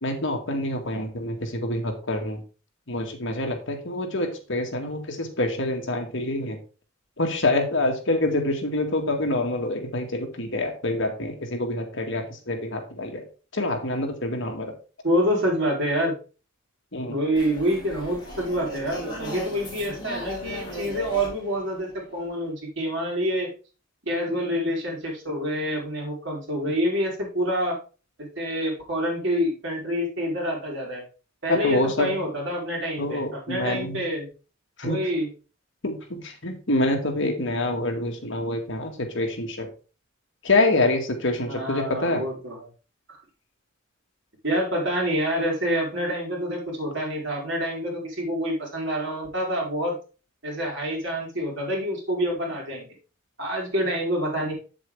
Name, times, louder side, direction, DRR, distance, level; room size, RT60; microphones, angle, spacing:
voice 1, 0.0-2.4 2.9-6.6 7.2-13.2 13.5-14.7 16.9-17.2 31.5-32.2 33.0-34.0 34.8-35.0 35.8-39.7 40.4-42.2, left 2 dB, 60° left, 2 dB, 2.0 m, -26 dB
voice 2, 15.0-16.1 17.1-23.5 24.0-27.8 28.2-31.0 31.4-34.3 34.8-35.3 41.5-42.7 44.4-50.0 50.4-52.9 53.4-54.5, equal, 60° right, -2 dB, 4.4 m, -27 dB
sound 1, 17.3-22.5, equal, 20° left, 3.7 m, -37 dB
8.2 x 7.5 x 3.6 m, 0.34 s
head